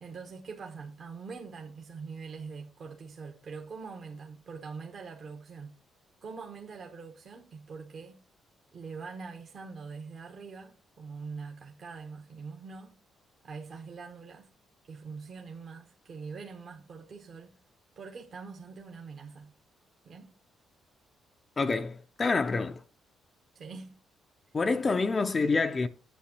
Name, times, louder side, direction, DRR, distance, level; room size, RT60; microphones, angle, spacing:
voice 1, 0.0-5.7 6.2-8.2 8.7-13.0 13.4-14.5 14.9-17.5 18.0-19.5 20.0-20.3 23.5-23.9, right 5 dB, 55° right, 1.0 m, -43 dB
voice 2, 21.6-22.8 24.5-25.9, left 4 dB, 35° left, 0.4 m, -27 dB
8.4 x 7.6 x 2.9 m
cardioid pair, 90°, 0 cm